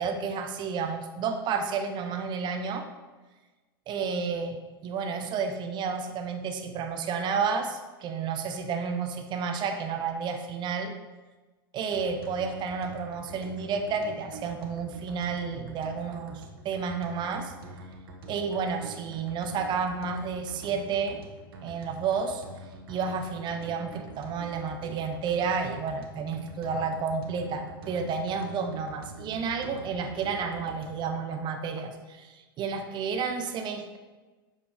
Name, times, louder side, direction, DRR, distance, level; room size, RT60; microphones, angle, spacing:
voice 1, 0.0-2.9 3.9-10.9 11.7-17.5 18.3-21.2 21.6-22.4 22.9-34.0, right 5 dB, 40° right, 5 dB, 0.8 m, -31 dB
sound 1, 11.9-31.1, right 2 dB, 75° right, 1.2 m, -45 dB
7.7 x 5.4 x 3.5 m, 1.3 s
hypercardioid pair, 100°, 12 cm